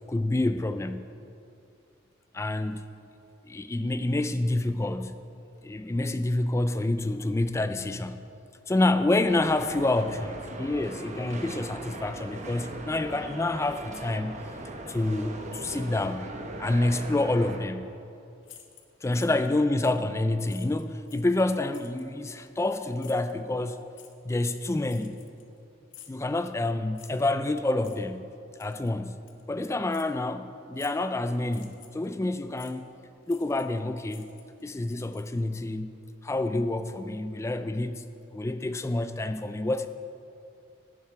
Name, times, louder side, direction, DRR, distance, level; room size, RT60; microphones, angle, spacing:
voice 1, 0.1-1.1 2.3-2.8 3.4-5.2 5.6-8.2 8.7-14.4 14.9-16.3 16.6-17.9 19.0-23.8 24.2-25.2 26.1-28.3 28.6-29.2 29.5-32.9 33.3-34.3 34.6-35.9 36.2-38.1 38.3-39.9, left 2 dB, 15° left, 10 dB, 0.3 m, -28 dB
sound 1, 9.3-17.6, right 2 dB, 35° right, 1.0 m, -40 dB
sound 2, 18.4-19.5 19.8-20.1 20.4-21.3 21.7-22.1 23.0-23.3 23.9-24.1 24.8-25.6 25.9-26.2 26.9-27.3 27.8-28.0 28.6-28.9 29.3-29.4 29.9-30.1 30.7-31.1 31.5-32.1 32.6-32.7 33.3-33.8 34.1-35.6, left 10 dB, 65° left, 0.9 m, -51 dB
15.0 x 7.6 x 4.8 m, 2.6 s
head